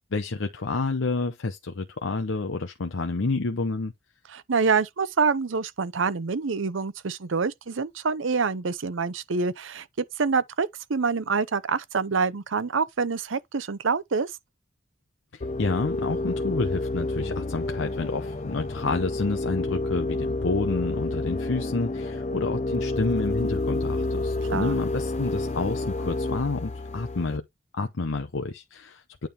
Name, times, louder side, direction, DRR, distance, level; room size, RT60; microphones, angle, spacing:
voice 1, 0.1-3.9 15.3-27.4 27.7-29.3, left 3 dB, 90° left, 0.8 m, -29 dB
voice 2, 4.3-14.3 24.5-24.8, right 5 dB, 90° right, 0.7 m, -26 dB
sound 1, 15.4-27.4, left 2 dB, 35° left, 0.5 m, -29 dB
9.1 x 3.4 x 4.4 m
head